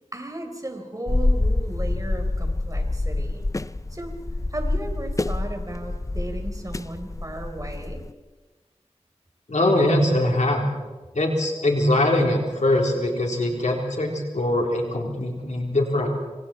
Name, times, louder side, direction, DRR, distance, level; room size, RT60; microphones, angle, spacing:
voice 1, 0.1-3.5 3.9-4.1 4.5-8.0, right 1 dB, 30° right, 4 dB, 4.3 m, -35 dB
sound 1, 1.1-8.1, left 2 dB, 25° left, 0.6 m, -26 dB
voice 2, 9.5-10.7 11.1-16.1, left 1 dB, 90° left, 1 dB, 4.0 m, -22 dB
27.0 x 25.5 x 4.5 m, 1.3 s
wide cardioid pair, 60°, 12 cm